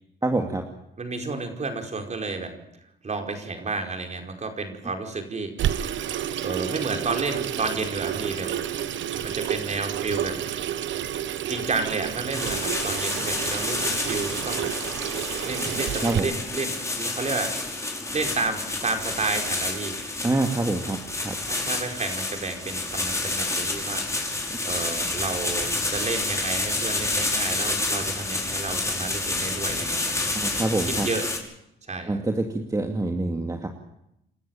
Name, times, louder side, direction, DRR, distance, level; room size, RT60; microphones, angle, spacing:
voice 1, 0.2-0.6 15.7-16.3 20.2-21.0 21.2-21.3 30.3-31.1 32.1-33.7, right 2 dB, 15° right, 3 dB, 2.4 m, -26 dB
voice 2, 1.0-2.5 3.0-5.5 6.4-8.5 9.2-10.4 11.5-14.7 15.4-17.5 18.1-20.0 21.5-24.0 24.6-30.3 30.8-31.3 31.9-32.2, right 3 dB, 35° right, 4 dB, 5.0 m, -31 dB
Water tap faucet / Sink (filling or washing), 5.6-16.2, right 10 dB, 70° right, 1.2 m, -30 dB
sound 1, 12.3-31.4, left 2 dB, 15° left, 5.6 m, -29 dB
28.5 x 13.0 x 9.2 m, 0.82 s
cardioid pair, 90°, 20 cm